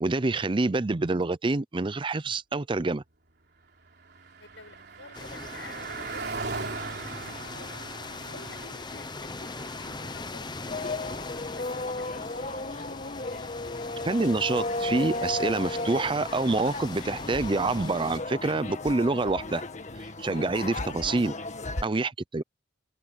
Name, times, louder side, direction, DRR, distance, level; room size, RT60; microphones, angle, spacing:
voice 1, 0.0-3.0 14.0-19.6 20.2-21.3 21.8-22.4, right 3 dB, 25° right, 0.5 m, -27 dB
Car passing by, 3.3-15.1, right 4 dB, 60° right, 3.5 m, -41 dB
voice 2, 4.4-11.1 11.4-12.3, left 3 dB, 80° left, 6.9 m, -50 dB
sound 1, 5.1-18.2, left 3 dB, 25° left, 0.7 m, -41 dB
sound 2, 10.7-21.8, left 2 dB, 40° left, 1.8 m, -34 dB
head